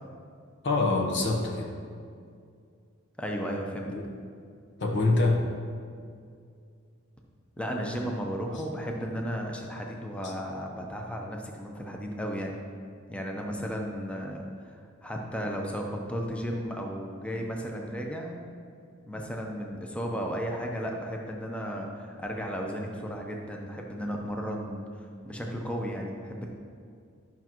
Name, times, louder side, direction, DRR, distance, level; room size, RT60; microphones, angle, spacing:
voice 1, 0.6-1.7 3.9-4.1 4.8-5.4 10.2-10.3, left 2 dB, 60° left, 1 dB, 0.9 m, -25 dB
voice 2, 3.2-3.9 7.6-12.5 13.1-14.4 14.7-18.4 19.1-26.5, equal, 5° left, 0 dB, 0.7 m, -34 dB
11.5 x 5.9 x 3.0 m, 2.3 s
head